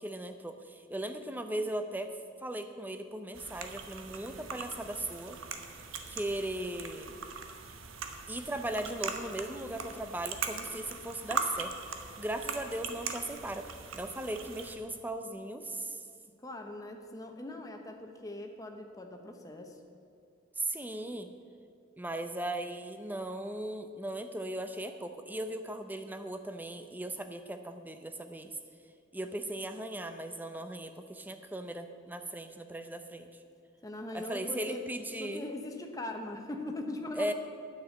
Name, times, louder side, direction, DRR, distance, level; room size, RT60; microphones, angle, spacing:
voice 1, 0.0-2.1 2.4-5.4 6.1-7.2 8.3-13.7 13.9-16.0 20.6-21.3 22.0-28.5 29.1-33.3 34.1-35.5 37.1-37.3, right 1 dB, 10° right, 8 dB, 0.6 m, -38 dB
sound 1, 3.3-14.7, right 5 dB, 85° right, 1.0 m, -40 dB
voice 2, 16.4-19.8 33.8-34.9 35.2-37.3, left 2 dB, 15° left, 3 dB, 1.0 m, -40 dB
9.4 x 7.0 x 8.4 m, 2.3 s
head